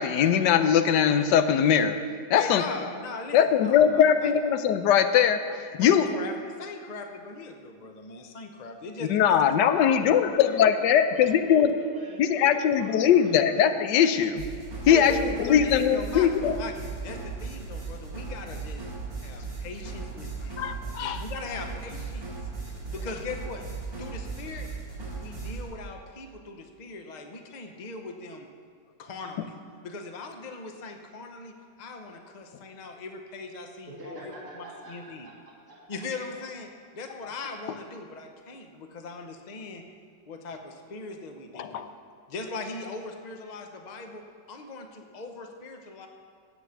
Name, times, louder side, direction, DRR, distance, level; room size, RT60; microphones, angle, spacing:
voice 1, 0.0-2.0 2.3-2.6 3.3-6.1 9.1-11.7 12.2-14.4 14.9-16.6 20.6-21.2 41.6-41.9, left 8 dB, 75° left, 9 dB, 1.2 m, -21 dB
voice 2, 2.3-4.3 5.8-9.4 14.9-16.3 16.6-16.7 17.0-18.8 19.2-20.6 21.0-22.3 22.9-23.6 24.0-24.7 25.2-28.5 29.0-29.6 29.8-35.3 35.9-39.8 40.3-41.9 42.3-46.1, left 3 dB, 60° left, 4 dB, 0.4 m, -39 dB
voice 3, 9.6-13.6 33.9-36.0, equal, 10° right, -7 dB, 2.3 m, -45 dB
sound 1, 14.4-25.6, right 4 dB, 45° right, 3.7 m, -37 dB
10.0 x 8.1 x 7.0 m, 2.1 s
omnidirectional pair, 2.0 m